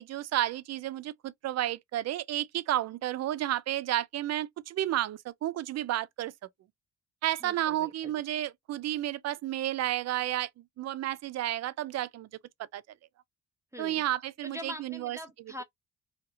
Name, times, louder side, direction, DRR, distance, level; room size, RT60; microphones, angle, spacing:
voice 1, 0.0-6.3 7.2-12.3 12.7-12.8 13.8-15.2, right 13 dB, 60° right, 0.5 m, -31 dB
voice 2, 7.4-8.2 13.7-14.0 14.4-15.6, equal, 10° right, 0.6 m, -43 dB
2.8 x 2.7 x 2.6 m
cardioid pair, 90°, 30 cm